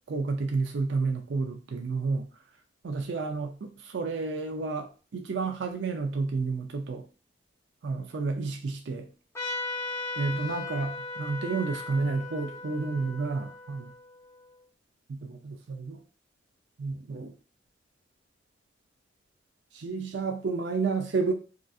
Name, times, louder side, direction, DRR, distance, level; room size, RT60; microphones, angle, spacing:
voice 1, 0.1-2.3 2.8-7.0 7.8-9.1 10.2-13.9 15.1-16.0 16.8-17.3 19.7-21.3, right 4 dB, 75° right, 4 dB, 0.4 m, -31 dB
Trumpet, 9.3-14.4, left 3 dB, 15° left, 0.5 m, -37 dB
3.8 x 2.4 x 2.3 m, 0.35 s
head